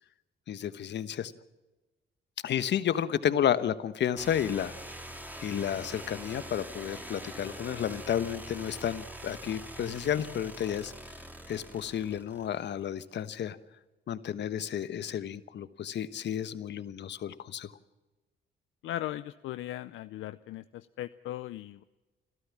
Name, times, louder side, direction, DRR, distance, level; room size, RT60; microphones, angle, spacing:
voice 1, 0.5-1.3 2.4-4.7 5.4-10.9 11.5-13.6 14.1-17.7, left 9 dB, 65° left, 14 dB, 1.2 m, -31 dB
sound 1, 4.2-12.9, right 1 dB, 10° right, 2.9 m, -44 dB
voice 2, 18.8-21.8, left 13 dB, 80° left, 13 dB, 0.6 m, -38 dB
29.5 x 13.0 x 7.3 m, 1.1 s
cardioid pair, 90°, 20 cm